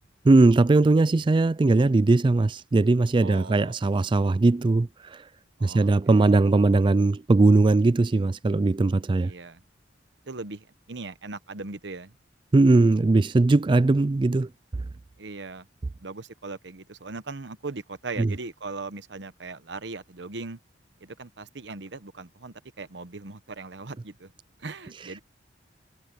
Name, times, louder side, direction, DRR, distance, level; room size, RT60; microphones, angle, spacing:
voice 1, 0.3-4.9 5.6-9.3 12.5-14.5 18.2-18.3, right 2 dB, 25° right, 0.3 m, -20 dB
voice 2, 3.2-3.8 5.6-6.3 9.2-9.6 10.2-12.2 15.2-15.7 16.0-20.6 21.0-24.3 24.6-25.2, right 3 dB, 65° right, 1.0 m, -39 dB
head